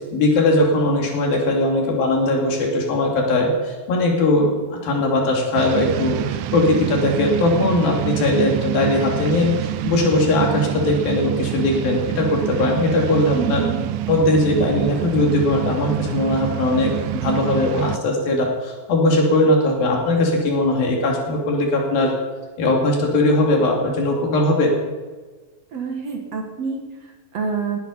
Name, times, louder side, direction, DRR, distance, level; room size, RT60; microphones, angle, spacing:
voice 1, 0.1-13.6 14.1-22.1 22.6-24.7, left 2 dB, 90° left, 0 dB, 4.4 m, -19 dB
sound 1, 5.6-18.0, right 14 dB, 80° right, 2.3 m, -26 dB
voice 2, 13.3-13.8 25.7-27.8, right 6 dB, 55° right, 2 dB, 2.3 m, -27 dB
19.5 x 10.5 x 5.5 m, 1.3 s
omnidirectional pair, 4.0 m